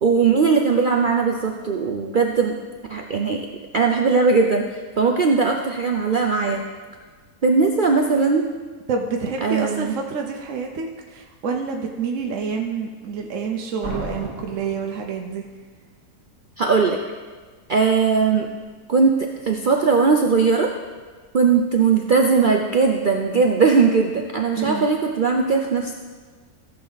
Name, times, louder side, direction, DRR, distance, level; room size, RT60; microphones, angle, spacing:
voice 1, 0.0-2.6 2.9-3.5 3.7-6.6 7.4-8.5 9.4-9.9 16.6-17.0 17.7-18.5 18.9-20.7 21.3-25.9, right 4 dB, 85° right, 2 dB, 0.4 m, -19 dB
voice 2, 8.9-15.4 24.5-24.9, right 5 dB, 60° right, 2 dB, 1.0 m, -28 dB
Slam, 13.8-15.7, right 1 dB, 45° right, 2.7 m, -34 dB
14.5 x 7.1 x 4.0 m, 1.4 s
omnidirectional pair, 1.7 m